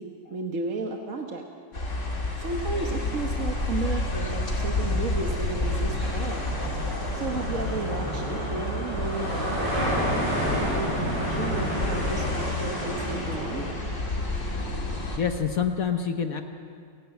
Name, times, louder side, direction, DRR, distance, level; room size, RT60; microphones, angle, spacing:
voice 1, 0.0-1.4 2.4-6.5 7.1-10.3 10.6-13.6, right 3 dB, 50° right, 2 dB, 1.5 m, -33 dB
sound 1, 1.7-15.2, left 2 dB, 40° left, 3.0 m, -30 dB
sound 2, 4.5-13.7, equal, 65° right, 8.6 m, -31 dB
voice 2, 15.2-16.4, left 7 dB, 60° left, 6 dB, 1.2 m, -27 dB
29.5 x 11.5 x 8.0 m, 2.3 s
omnidirectional pair, 1.9 m